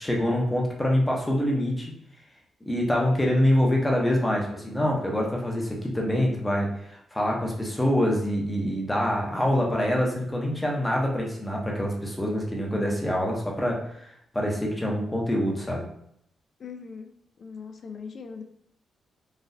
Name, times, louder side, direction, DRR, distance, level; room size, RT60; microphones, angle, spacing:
voice 1, 0.0-1.9 2.7-14.1 14.3-15.8, equal, 10° left, -2 dB, 0.8 m, -25 dB
voice 2, 16.6-17.1 17.4-18.4, left 5 dB, 50° left, 6 dB, 0.4 m, -40 dB
3.9 x 2.4 x 2.6 m, 0.71 s
cardioid pair, 110°, 0 cm